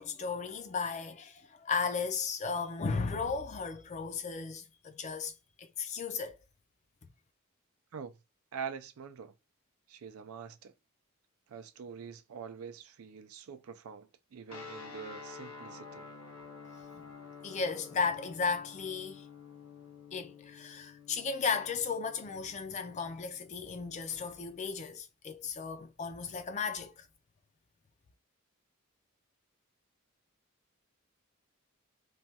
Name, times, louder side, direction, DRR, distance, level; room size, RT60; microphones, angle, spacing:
voice 1, 0.0-5.3 5.6-6.4 16.9-17.0 17.4-19.3 20.1-27.0, left 5 dB, 35° left, 0.4 m, -35 dB
voice 2, 8.5-9.3 9.9-10.7 11.5-16.1, right 6 dB, 80° right, 0.4 m, -45 dB
sound 1, 14.5-24.8, left 5 dB, 90° left, 0.8 m, -50 dB
3.1 x 2.3 x 2.7 m
head